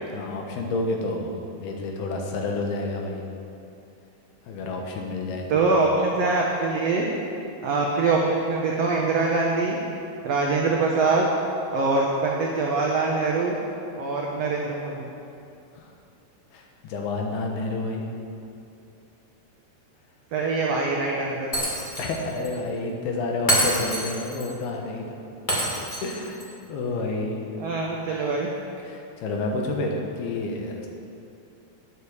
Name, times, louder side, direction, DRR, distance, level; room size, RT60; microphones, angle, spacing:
voice 1, 0.1-1.3 1.6-3.2 4.5-5.7 15.8-15.9 16.5-18.1 22.0-25.2 26.0-26.4 26.7-27.4 28.8-30.9, left 2 dB, 80° left, 1 dB, 3.2 m, -29 dB
voice 2, 5.5-7.1 7.6-9.8 10.2-11.3 11.7-13.6 14.0-15.1 20.3-21.5 27.6-28.5, right 3 dB, 85° right, -2 dB, 1.4 m, -23 dB
Shatter, 21.5-22.2 22.4-22.5 23.5-24.5 25.5-26.5, equal, 55° left, 0.5 m, -26 dB
9.8 x 8.5 x 7.1 m, 2.7 s
omnidirectional pair, 4.4 m